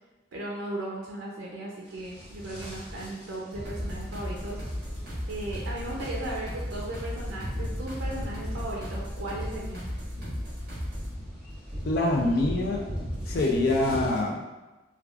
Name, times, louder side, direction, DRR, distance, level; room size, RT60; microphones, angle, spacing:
voice 1, 0.3-4.6 5.3-9.9, right 1 dB, 85° right, -3 dB, 0.5 m, -36 dB
sound 1, 1.9-14.2, equal, 5° right, 1.4 m, -39 dB
sound 2, 3.6-11.2, equal, 50° right, 1.4 m, -36 dB
voice 2, 11.9-12.8 13.3-14.4, left 2 dB, 55° left, 0 dB, 0.4 m, -25 dB
3.4 x 2.3 x 2.3 m, 1.1 s
head